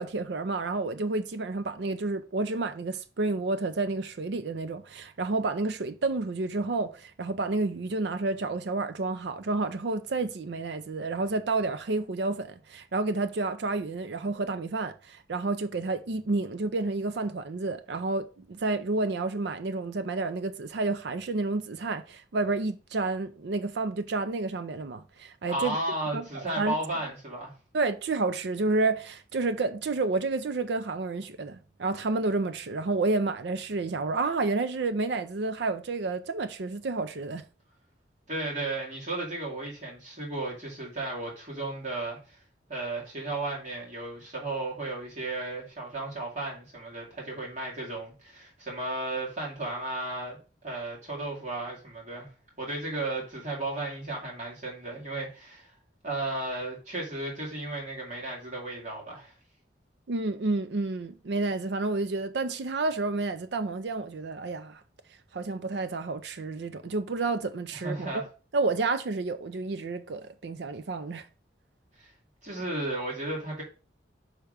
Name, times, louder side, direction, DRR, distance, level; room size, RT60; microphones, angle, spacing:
voice 1, 0.0-25.8 26.1-26.3 26.6-26.7 27.7-37.4 60.1-64.8 65.3-68.2 68.5-71.3, right 3 dB, 65° right, 0.5 m, -30 dB
voice 2, 25.5-27.5 38.3-42.4 42.7-50.4 50.6-52.3 52.6-55.7 56.0-59.3 67.7-68.2 72.0-72.1 72.4-73.6, right 2 dB, 40° right, 2.2 m, -34 dB
5.9 x 3.5 x 4.8 m
head